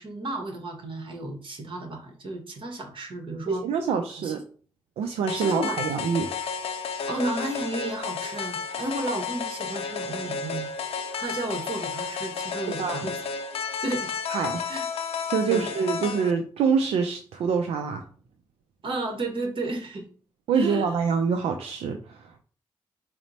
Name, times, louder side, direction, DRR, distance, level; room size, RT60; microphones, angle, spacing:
voice 1, 0.0-3.6 4.2-4.3 5.3-5.8 7.1-10.7 11.2-13.2 13.8-14.1 14.7-14.8 15.5-15.7 18.8-20.1 20.5-20.9, right 2 dB, 60° right, 3 dB, 1.1 m, -32 dB
voice 2, 3.5-4.4 5.0-6.3 12.8-13.1 14.3-14.6 15.3-18.0 20.5-22.4, right 6 dB, 85° right, 5 dB, 0.4 m, -26 dB
sound 1, 5.3-16.3, left 6 dB, 80° left, 0.5 m, -32 dB
4.2 x 2.0 x 4.0 m, 0.43 s
supercardioid pair, 50°, 10 cm